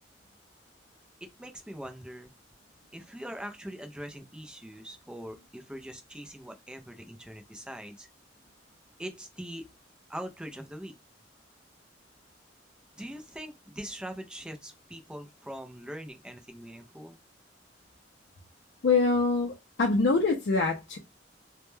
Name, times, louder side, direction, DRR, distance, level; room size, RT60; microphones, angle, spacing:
voice 1, 1.2-2.3 2.9-8.1 9.0-9.7 10.1-10.9 12.9-17.2, equal, 5° right, 0.3 m, -42 dB
voice 2, 18.8-21.0, left 3 dB, 70° left, 0.4 m, -25 dB
2.1 x 2.1 x 3.0 m
head